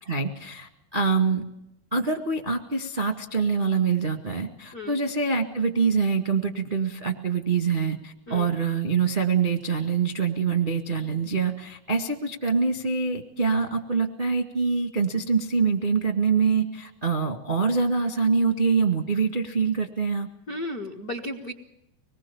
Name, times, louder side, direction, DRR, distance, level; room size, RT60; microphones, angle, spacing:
voice 1, 0.0-1.4 1.9-20.3, right 5 dB, 40° right, 4 dB, 0.6 m, -25 dB
voice 2, 20.5-21.5, left 1 dB, 70° left, 6 dB, 0.8 m, -34 dB
25.5 x 21.0 x 7.1 m, 0.85 s
omnidirectional pair, 4.4 m